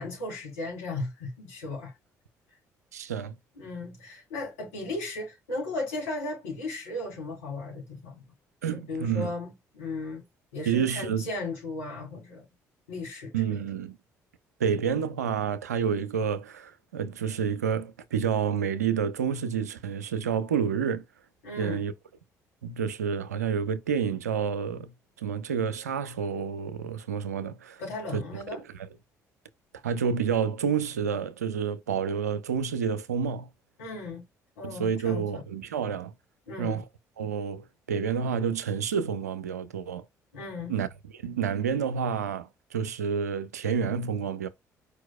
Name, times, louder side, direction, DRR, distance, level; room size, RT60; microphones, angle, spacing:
voice 1, 0.0-1.9 3.6-8.2 8.7-10.2 10.5-12.5 12.9-13.6 21.4-21.8 27.8-28.6 33.8-34.2 34.6-35.4 36.5-36.8 40.3-40.7, left 2 dB, 70° left, 3.0 m, -36 dB
voice 2, 2.9-3.4 8.6-9.3 10.7-11.2 13.3-14.0 14.6-21.0 21.6-21.9 22.6-24.9 25.2-27.8 28.1-28.2 29.8-33.5 34.6-36.1 36.6-36.8 37.2-40.0 40.7-40.9 41.1-44.5, right 7 dB, 80° right, 0.4 m, -29 dB
4.8 x 4.5 x 2.2 m
figure-of-eight pair, 50°, 9 cm